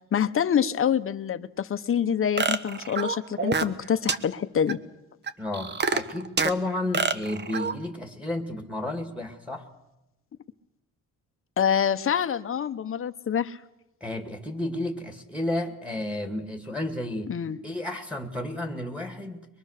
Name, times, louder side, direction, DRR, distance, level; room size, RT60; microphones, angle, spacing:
voice 1, 0.1-4.8 11.6-13.6 17.3-17.6, left 8 dB, 40° left, 10 dB, 1.0 m, -26 dB
sound 1, 2.4-3.8 4.1-4.2 4.7-4.8 5.3-6.5 6.9-7.7, right 5 dB, 35° right, 1.2 m, -26 dB
voice 2, 5.4-9.7 14.0-17.3 17.6-19.5, left 1 dB, 5° right, 4 dB, 2.3 m, -32 dB
23.5 x 22.5 x 6.6 m, 0.93 s
cardioid pair, 130°, 32 cm